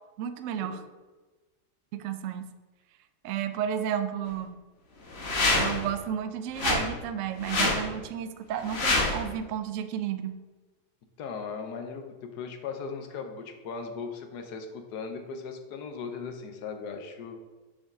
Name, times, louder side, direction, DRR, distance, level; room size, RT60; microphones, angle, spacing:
voice 1, 0.2-0.8 1.9-2.5 3.2-4.6 5.6-10.3, right 9 dB, 70° right, 9 dB, 0.7 m, -32 dB
sound 1, 5.1-5.9 6.6-6.8 7.4-7.8 8.6-9.2, left 2 dB, 45° left, 1.2 m, -26 dB
voice 2, 11.2-17.4, left 5 dB, 75° left, 5 dB, 1.3 m, -38 dB
6.3 x 5.7 x 3.6 m, 1.2 s
omnidirectional pair, 1.8 m